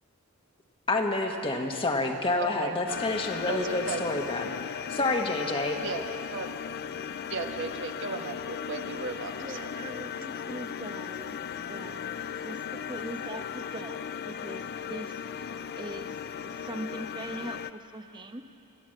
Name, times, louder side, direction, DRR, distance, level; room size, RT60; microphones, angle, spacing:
voice 1, 0.9-4.5 4.9-5.8, left 2 dB, 25° left, 2 dB, 1.4 m, -28 dB
sound 1, 2.9-17.7, left 7 dB, 50° left, 0.4 m, -37 dB
voice 2, 3.5-4.0 5.7-6.0 6.3-6.5 7.3-9.7, right 4 dB, 60° right, 5 dB, 1.3 m, -35 dB
voice 3, 9.4-11.4 11.7-18.4, right 2 dB, 20° right, 7 dB, 1.0 m, -42 dB
28.5 x 11.5 x 7.8 m, 2.8 s
head